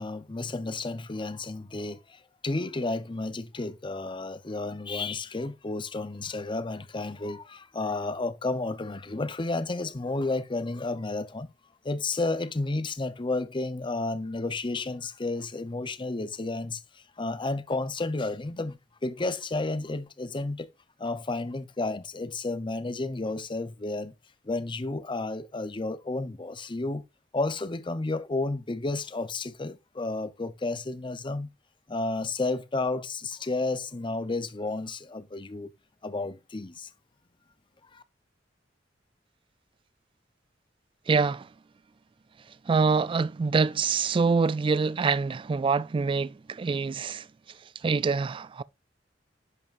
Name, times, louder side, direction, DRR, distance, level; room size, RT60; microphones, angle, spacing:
voice 1, 0.0-11.5 11.8-20.7 21.0-24.1 24.4-27.0 27.3-31.5 31.9-35.7 36.0-36.9 37.9-38.0, left 2 dB, 25° left, 0.7 m, -32 dB
voice 2, 41.1-41.5 42.5-47.3 47.8-48.6, right 4 dB, 30° right, 0.3 m, -25 dB
11.0 x 5.6 x 2.5 m
head